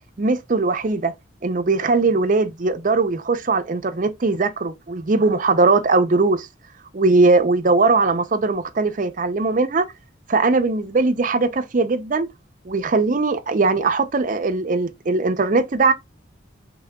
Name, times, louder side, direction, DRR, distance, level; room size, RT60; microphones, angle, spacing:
voice 1, 0.2-1.1 1.4-6.5 6.9-9.9 10.3-12.3 12.6-15.9, right 3 dB, 45° right, 0.5 m, -20 dB
5.8 x 3.5 x 2.2 m
head